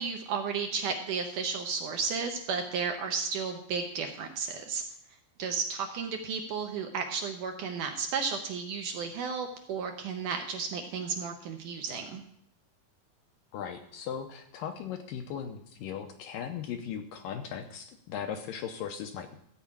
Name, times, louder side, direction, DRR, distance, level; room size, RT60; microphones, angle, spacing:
voice 1, 0.0-4.8 5.4-12.2, right 5 dB, 75° right, 4 dB, 2.0 m, -33 dB
voice 2, 13.5-19.4, left 8 dB, 80° left, 6 dB, 2.2 m, -38 dB
14.0 x 4.8 x 8.6 m, 0.68 s
omnidirectional pair, 4.5 m